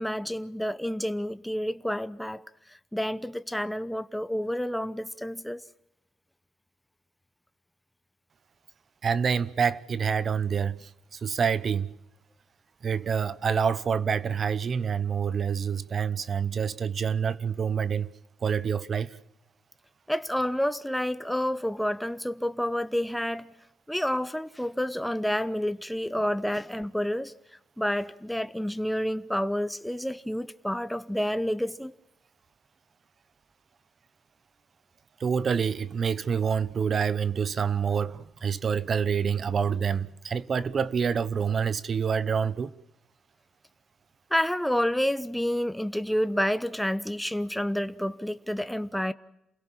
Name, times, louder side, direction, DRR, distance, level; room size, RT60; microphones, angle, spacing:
voice 1, 0.0-2.4 2.9-5.6 20.1-23.5 23.9-27.3 27.8-31.9 44.3-49.1, equal, 5° left, 0.8 m, -29 dB
voice 2, 9.0-11.9 12.8-18.1 18.4-19.2 35.2-42.7, right 6 dB, 45° right, 0.9 m, -27 dB
28.0 x 17.5 x 7.3 m
cardioid pair, 90°, 0 cm